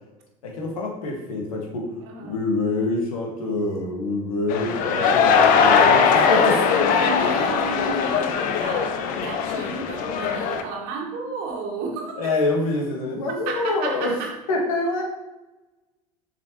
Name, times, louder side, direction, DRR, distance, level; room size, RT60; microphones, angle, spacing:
voice 1, 0.4-1.9 2.2-6.6 12.2-14.2 14.5-15.0, left 2 dB, 70° left, 0 dB, 1.7 m, -26 dB
voice 2, 2.0-2.4 5.5-12.2 13.5-14.3, right 3 dB, 55° right, 0 dB, 1.6 m, -32 dB
sound 1, 4.5-10.6, left 6 dB, 45° left, 0.7 m, -20 dB
7.1 x 5.8 x 3.0 m, 1.0 s
figure-of-eight pair, 70°, 19 cm